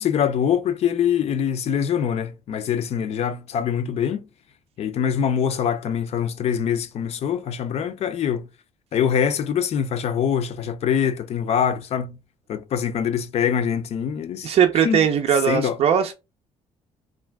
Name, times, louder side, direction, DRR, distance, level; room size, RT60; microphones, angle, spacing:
voice 1, 0.0-4.2 4.8-8.5 8.9-12.2 12.5-14.6 14.8-15.0 15.5-15.8, left 8 dB, 60° left, 0.4 m, -24 dB
voice 2, 14.4-16.1, right 8 dB, 55° right, 0.4 m, -19 dB
2.4 x 2.2 x 3.3 m
cardioid pair, 85°, 12 cm